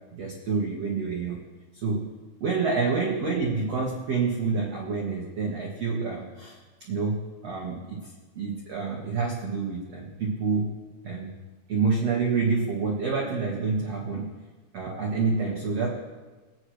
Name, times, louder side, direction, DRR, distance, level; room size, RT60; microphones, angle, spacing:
voice 1, 0.1-1.4 1.8-2.1 2.4-8.1 8.3-10.7 11.0-11.3 11.7-14.3 14.7-15.9, right 4 dB, 80° right, -3 dB, 1.4 m, -28 dB
22.5 x 9.7 x 3.2 m, 1.3 s
omnidirectional pair, 5.6 m